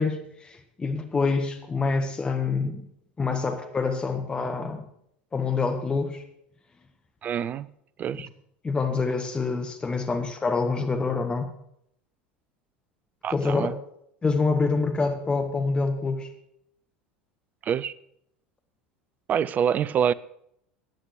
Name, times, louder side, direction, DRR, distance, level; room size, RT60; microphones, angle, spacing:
voice 1, 0.0-2.8 3.2-4.8 5.3-6.2 8.1-8.2 8.6-11.5 13.3-13.7 14.2-16.3, left 4 dB, 20° left, 1.5 m, -26 dB
voice 2, 7.2-7.7 8.0-8.3 13.2-13.7 17.6-17.9 19.3-20.1, right 8 dB, 30° right, 0.5 m, -26 dB
14.5 x 9.0 x 6.4 m
figure-of-eight pair, 75°, 5 cm